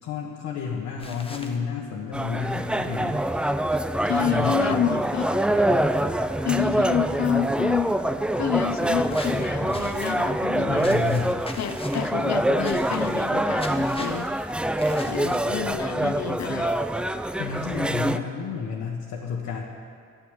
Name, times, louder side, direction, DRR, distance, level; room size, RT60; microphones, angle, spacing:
voice 1, 0.0-3.2 4.0-5.0 10.7-11.4 17.4-19.6, left 6 dB, 80° left, -3 dB, 1.4 m, -31 dB
sound 1, 1.0-1.6 9.1-10.1 10.8-12.1 12.6-13.3 13.6-14.3 14.8-15.7, left 2 dB, 20° left, 1.1 m, -41 dB
sound 2, 2.1-18.2, right 1 dB, 5° right, 0.4 m, -25 dB
voice 2, 4.1-5.9 6.4-7.9 8.4-11.0 11.6-14.3 15.1-16.8, left 10 dB, 60° left, 11 dB, 0.7 m, -29 dB
10.5 x 8.4 x 8.1 m, 2.3 s
cardioid pair, 90°, 30 cm